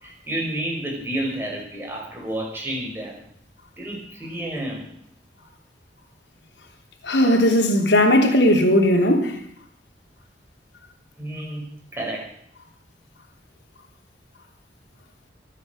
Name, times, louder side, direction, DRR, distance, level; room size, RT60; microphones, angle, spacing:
voice 1, 0.0-3.2 3.8-4.9 11.2-11.7 11.9-12.3, right 1 dB, 15° right, 6.0 m, -30 dB
voice 2, 7.0-9.4, left 1 dB, 80° left, 3.3 m, -17 dB
23.5 x 9.1 x 6.6 m
head